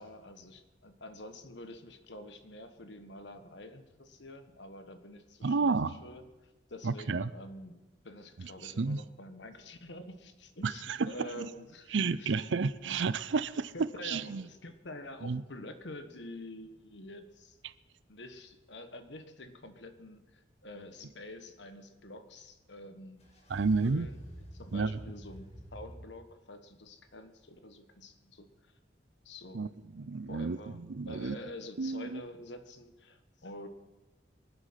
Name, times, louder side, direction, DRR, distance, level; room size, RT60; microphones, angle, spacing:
voice 1, 0.0-12.3 13.7-17.6 18.1-23.2 23.8-24.2 24.5-28.7 29.2-29.7 30.3-33.7, left 1 dB, 70° left, 9 dB, 1.3 m, -47 dB
voice 2, 5.4-5.9 6.8-7.3 8.4-9.0 10.6-11.4 11.9-14.5 15.2-15.4 23.5-24.1 24.7-25.0 29.5-29.7 29.9-31.4 31.8-32.2, right 4 dB, 80° right, 17 dB, 0.6 m, -31 dB
sound 1, 23.2-25.9, equal, 35° left, 2.5 m, -48 dB
24.0 x 8.2 x 5.8 m, 1.1 s
head